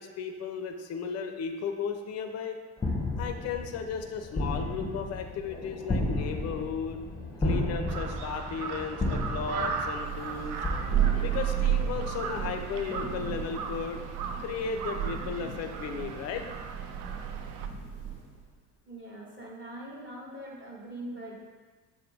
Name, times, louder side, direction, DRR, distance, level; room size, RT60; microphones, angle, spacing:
voice 1, 0.0-2.6 3.2-7.0 7.4-10.6 11.2-14.0 14.4-16.5, left 6 dB, 35° left, 6 dB, 0.5 m, -35 dB
sound 1, 2.8-12.1, left 1 dB, 10° left, 0.8 m, -33 dB
Crow, 7.9-17.7, right 5 dB, 45° right, 0.4 m, -38 dB
Thunder, 9.9-18.3, right 9 dB, 90° right, 0.9 m, -33 dB
voice 2, 18.9-21.3, right 1 dB, 25° right, -4 dB, 1.4 m, -42 dB
6.6 x 2.2 x 3.5 m, 1.4 s
figure-of-eight pair, 60°, 48 cm